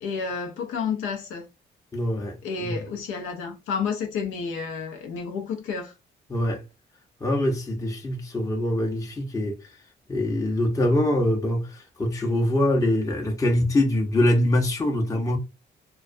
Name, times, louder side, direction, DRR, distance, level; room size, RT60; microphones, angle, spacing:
voice 1, 0.0-1.4 2.4-5.9, left 5 dB, 85° left, 0.6 m, -30 dB
voice 2, 1.9-2.8 6.3-6.6 7.2-9.6 10.1-15.4, left 1 dB, 15° left, 0.6 m, -24 dB
2.3 x 2.1 x 2.5 m
cardioid pair, 90°, 20 cm